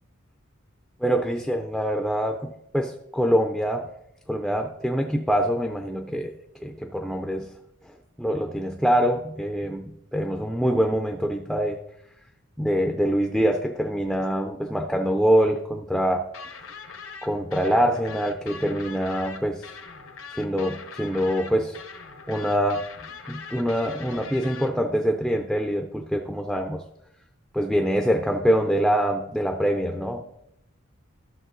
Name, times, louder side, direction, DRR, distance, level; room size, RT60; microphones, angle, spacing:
voice 1, 1.0-3.9 4.3-6.4 6.6-7.5 7.8-7.9 8.2-11.8 12.6-16.2 17.2-19.7 20.3-21.8 22.3-22.8 23.3-26.8 27.5-30.2, equal, ahead, 4 dB, 0.6 m, -24 dB
sound 1, 16.3-24.7, left 5 dB, 70° left, 1.2 m, -41 dB
13.5 x 6.7 x 4.0 m, 0.80 s
head